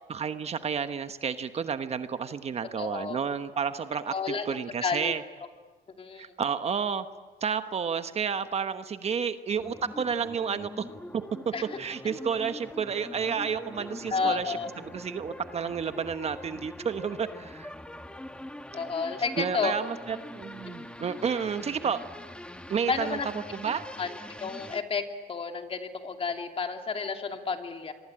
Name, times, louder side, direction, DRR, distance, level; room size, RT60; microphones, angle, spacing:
voice 1, 0.1-5.2 6.2-7.1 7.4-10.9 11.4-17.7 19.4-22.0 22.7-23.2 23.5-23.9, right 6 dB, 40° right, 10 dB, 1.2 m, -31 dB
voice 2, 2.8-3.2 4.1-4.5 4.8-5.1 6.0-6.3 11.5-11.6 14.1-14.7 18.7-19.7 22.9-23.3 24.0-24.1 24.4-27.9, left 5 dB, 35° left, 4 dB, 2.8 m, -31 dB
sound 1, 9.6-24.8, left 1 dB, 5° left, 1.5 m, -43 dB
27.0 x 24.0 x 8.9 m, 1.4 s
cardioid pair, 110°, 17 cm